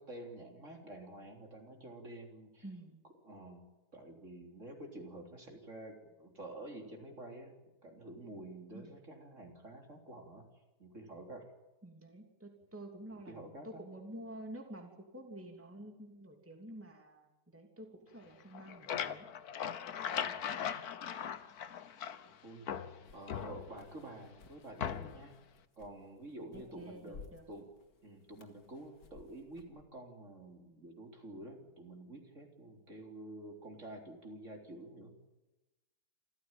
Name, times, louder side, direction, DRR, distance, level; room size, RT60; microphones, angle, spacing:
voice 1, 0.0-2.7 3.2-7.5 7.8-10.5 10.8-11.5 13.3-13.8 20.1-20.4 22.4-22.7 23.1-25.4 25.8-27.7 28.0-35.1, right 1 dB, 45° right, 3 dB, 4.1 m, -49 dB
voice 2, 2.6-3.0 8.7-8.9 11.8-19.3 26.5-27.4, right 1 dB, 5° right, 3 dB, 2.9 m, -49 dB
sound 1, 18.4-22.3 22.7-24.0 24.8-25.3, left 8 dB, 65° left, 1.5 m, -39 dB
sound 2, 23.0-29.8, left 5 dB, 90° left, 2.9 m, -59 dB
28.0 x 14.5 x 9.1 m, 1.1 s
omnidirectional pair, 1.8 m